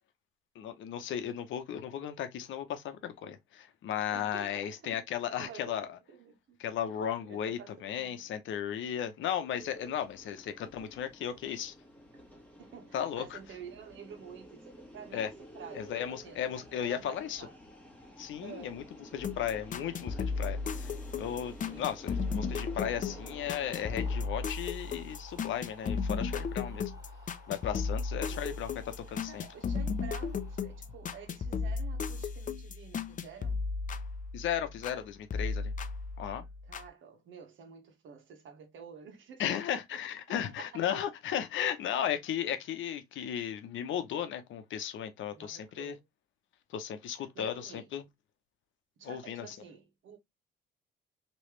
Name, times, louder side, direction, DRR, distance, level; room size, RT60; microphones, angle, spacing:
voice 1, 0.6-6.0 6.6-11.7 12.9-13.4 15.1-15.3 15.7-17.5 18.2-18.8 19.1-26.9 27.5-29.4 34.3-35.7 36.2-36.4 39.4-46.0 46.7-48.0 49.0-49.6, left 9 dB, 75° left, 0.8 m, -35 dB
voice 2, 4.1-5.0 5.4-6.6 6.9-8.3 12.1-12.2 12.6-17.5 18.4-18.8 21.6-21.9 28.3-28.6 29.2-33.7 36.6-39.6 39.9-40.0 40.4-40.8 45.3-46.0 47.3-47.9 49.0-50.2, right 6 dB, 80° right, 1.3 m, -50 dB
sound 1, 9.5-24.2, equal, 5° left, 1.3 m, -52 dB
sound 2, 19.2-35.0 35.3-36.9, left 5 dB, 40° left, 0.5 m, -35 dB
sound 3, 22.6-31.7, left 2 dB, 15° right, 1.7 m, -55 dB
3.2 x 3.0 x 3.0 m
cardioid pair, 90°, 20 cm